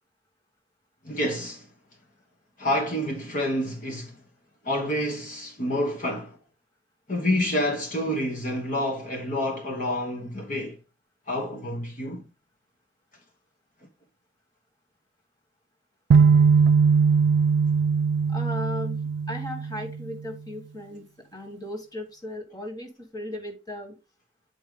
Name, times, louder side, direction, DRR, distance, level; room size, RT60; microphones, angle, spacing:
voice 1, 1.0-1.7 2.6-4.2 4.6-6.4 7.1-10.8 11.3-12.3, left 1 dB, 45° left, 1.2 m, -28 dB
sound 1, 16.1-20.1, right 5 dB, 70° right, 0.3 m, -20 dB
voice 2, 18.3-19.0 19.3-21.1 21.3-23.9, left 1 dB, 20° left, 1.8 m, -36 dB
8.6 x 4.7 x 3.9 m
head